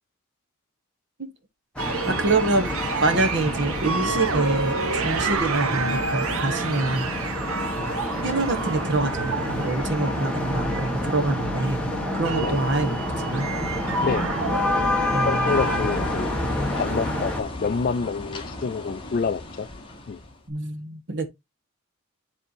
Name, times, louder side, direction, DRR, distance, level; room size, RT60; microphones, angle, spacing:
sound 1, 1.8-17.4, left 1 dB, 5° left, 1.4 m, -28 dB
sound 2, 1.8-15.8, right 4 dB, 75° right, 1.0 m, -30 dB
voice 1, 2.1-2.7 3.0-7.1 8.2-11.8 12.1-13.5 15.1-15.7 20.5-21.3, right 2 dB, 55° right, 1.4 m, -26 dB
voice 2, 15.3-16.3 16.7-19.7 20.1-20.2, left 5 dB, 40° left, 0.3 m, -27 dB
sound 3, 15.5-20.4, left 1 dB, 25° left, 1.3 m, -35 dB
10.5 x 3.6 x 2.7 m
head